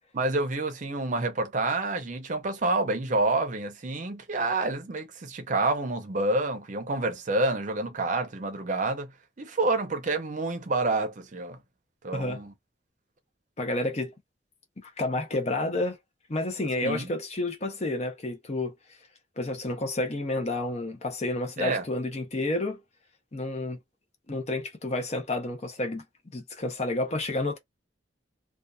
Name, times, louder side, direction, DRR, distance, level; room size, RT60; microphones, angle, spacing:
voice 1, 0.1-9.1 9.4-11.6 12.0-12.5 16.8-17.1 21.6-21.8, right 2 dB, 45° right, 0.6 m, -28 dB
voice 2, 13.6-14.1 14.8-16.0 16.3-18.7 19.4-22.8 23.3-23.8 24.3-26.0 26.3-27.6, left 2 dB, 35° left, 0.7 m, -30 dB
2.5 x 2.3 x 2.2 m
head